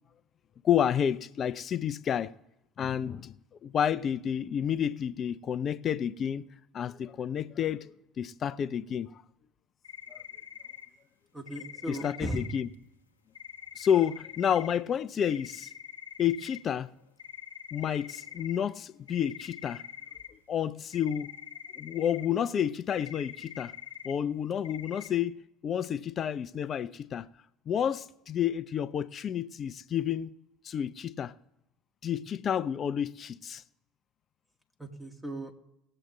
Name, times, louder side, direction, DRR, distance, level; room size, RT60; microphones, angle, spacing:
voice 1, 0.6-2.3 2.8-3.4 3.6-6.4 6.7-9.1 10.1-10.2 11.9-12.7 13.8-15.7 16.2-16.9 17.7-19.8 20.5-21.3 21.8-23.7 24.0-27.3 27.7-30.3 30.6-31.3 32.0-33.6, left 9 dB, 45° left, 0.5 m, -30 dB
sound 1, 9.8-10.9 11.5-12.7 13.3-14.8 15.3-16.6 17.2-18.6 19.1-20.3 20.9-22.3 22.9-24.1 24.6-25.1, left 9 dB, 90° left, 0.8 m, -45 dB
voice 2, 11.3-12.4 34.8-35.6, right 1 dB, 10° right, 1.8 m, -37 dB
18.5 x 7.7 x 3.0 m
hypercardioid pair, 65°, 0 cm